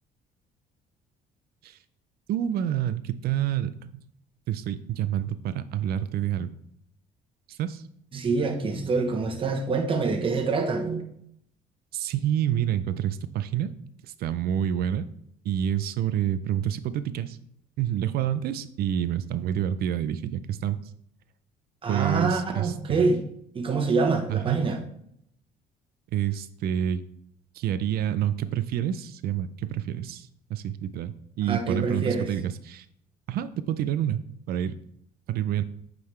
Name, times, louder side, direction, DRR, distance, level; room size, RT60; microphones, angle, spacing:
voice 1, 2.3-4.1 4.5-6.5 7.6-7.8 11.9-13.7 14.0-15.1 15.4-17.4 17.8-20.8 21.9-23.1 24.3-24.7 26.1-27.0 27.5-32.9 33.3-34.2 34.5-34.7 35.3-35.6, right 10 dB, 65° right, 13 dB, 0.5 m, -28 dB
voice 2, 8.1-11.0 21.8-23.2 23.5-24.8 31.5-32.3, right 4 dB, 30° right, 4 dB, 1.0 m, -26 dB
8.7 x 3.8 x 3.2 m, 0.70 s
cardioid pair, 110°, 17 cm